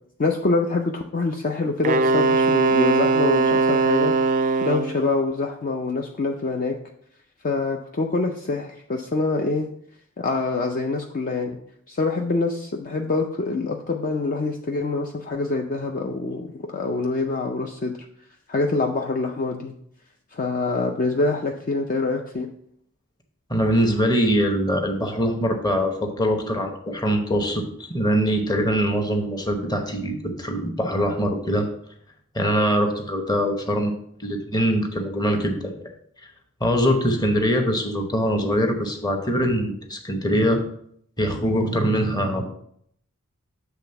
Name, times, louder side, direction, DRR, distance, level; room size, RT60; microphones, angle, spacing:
voice 1, 0.2-4.1 4.6-6.8 7.4-9.7 10.2-11.6 11.9-18.0 18.5-19.7 20.3-22.5, left 3 dB, 40° left, 3 dB, 0.5 m, -25 dB
Wind instrument woodwind instrument, 1.8-5.0, right 3 dB, 40° right, 0.4 m, -20 dB
voice 2, 23.5-31.7 32.3-33.9 34.2-35.7 36.6-40.6 41.2-42.5, equal, 20° left, 4 dB, 0.9 m, -23 dB
7.1 x 3.5 x 5.7 m, 0.68 s
head